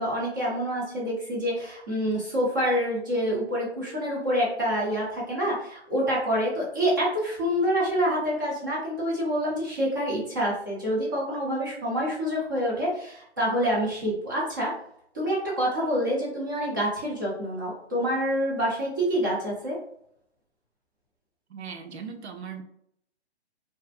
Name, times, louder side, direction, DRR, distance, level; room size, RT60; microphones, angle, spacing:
voice 1, 0.0-14.7 15.1-19.8, equal, 20° right, -5 dB, 0.5 m, -27 dB
voice 2, 21.5-22.6, right 6 dB, 75° right, 6 dB, 0.6 m, -38 dB
2.5 x 2.4 x 2.4 m, 0.70 s
figure-of-eight pair, 145°, 33 cm